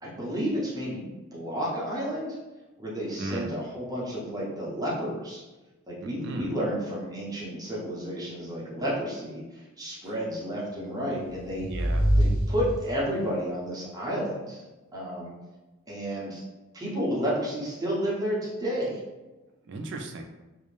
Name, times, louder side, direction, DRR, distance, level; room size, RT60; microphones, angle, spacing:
voice 1, 0.0-1.1 1.3-2.4 2.8-5.4 5.9-11.7 12.2-14.6 14.9-15.3 15.9-16.4 16.7-19.0, equal, 20° right, -6 dB, 0.6 m, -31 dB
voice 2, 3.2-3.5 6.0-6.6 10.0-10.1 11.6-12.1 19.6-20.2, right 2 dB, 55° right, 3 dB, 0.4 m, -36 dB
sound 1, 11.0-13.3, equal, 60° left, 0.7 m, -26 dB
2.4 x 2.0 x 3.1 m, 1.1 s
head